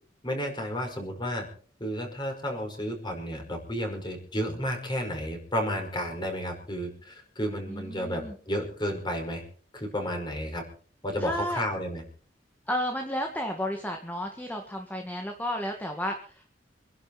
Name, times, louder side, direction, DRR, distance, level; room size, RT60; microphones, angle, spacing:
voice 1, 0.2-1.5 1.8-9.4 9.7-10.6 11.0-12.0, equal, 25° left, 3 dB, 5.3 m, -32 dB
voice 2, 7.7-8.3 11.2-11.6 12.7-16.5, equal, 10° left, 2 dB, 2.0 m, -32 dB
26.5 x 11.5 x 4.3 m, 0.42 s
head